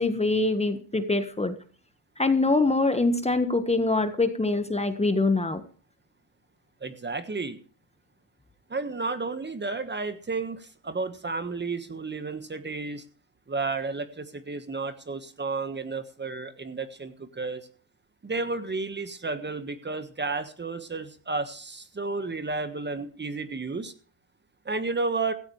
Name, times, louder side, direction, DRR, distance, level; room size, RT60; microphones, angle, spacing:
voice 1, 0.0-1.5 2.2-5.6, left 2 dB, 15° left, 9 dB, 1.4 m, -24 dB
voice 2, 6.8-7.6 8.7-13.0 13.5-17.7 18.2-23.9 24.6-25.3, right 3 dB, 20° right, 10 dB, 1.5 m, -32 dB
16.0 x 14.5 x 3.2 m, 0.42 s
cardioid pair, 100°, 48 cm